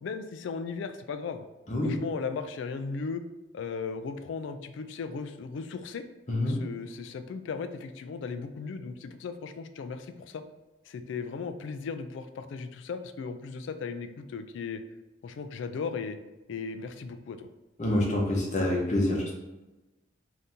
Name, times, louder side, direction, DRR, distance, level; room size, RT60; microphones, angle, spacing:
voice 1, 0.0-1.4 1.8-3.2 3.5-6.0 6.4-10.4 10.9-14.8 15.2-16.2 16.5-17.5, left 5 dB, 70° left, 9 dB, 0.3 m, -36 dB
voice 2, 6.3-6.6 17.8-19.3, left 1 dB, 35° left, -2 dB, 0.8 m, -26 dB
2.7 x 2.7 x 3.5 m, 1.1 s
head